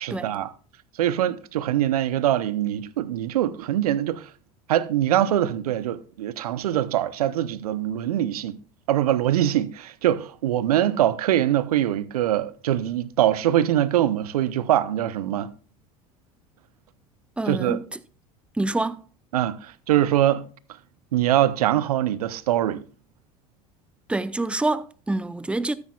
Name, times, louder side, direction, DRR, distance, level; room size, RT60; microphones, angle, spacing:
voice 1, 0.0-0.5 1.0-4.2 4.7-8.6 8.9-15.5 17.5-17.8 19.3-20.5 21.1-22.8, right 12 dB, 75° right, 0.7 m, -23 dB
voice 2, 17.4-18.0 18.6-19.0 24.1-25.7, right 2 dB, 5° right, 0.6 m, -26 dB
13.5 x 9.6 x 2.3 m
hypercardioid pair, 75°, 19 cm